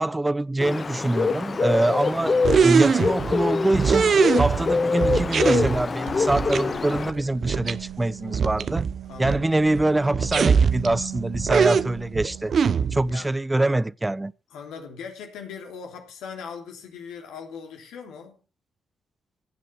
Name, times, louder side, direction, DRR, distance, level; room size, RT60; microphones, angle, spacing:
voice 1, 0.0-8.8 9.2-12.5 12.9-14.3, right 2 dB, 15° right, 0.5 m, -24 dB
Bird, 0.6-7.1, left 4 dB, 40° left, 1.0 m, -25 dB
voice 2, 1.7-2.1 9.1-9.5 13.1-13.3 14.5-18.4, left 6 dB, 80° left, 3.3 m, -40 dB
sound 1, 2.4-3.4 3.7-4.7 5.0-5.8 6.3-6.6 6.9-7.0 7.4-7.7 8.0-8.1 8.3-9.4 9.8-9.9 10.1-11.0 11.3-13.1, right 6 dB, 55° right, 0.9 m, -22 dB
sound 2, 6.1-13.4, right 11 dB, 85° right, 1.7 m, -39 dB
16.5 x 7.5 x 5.8 m
supercardioid pair, 55°, 0 cm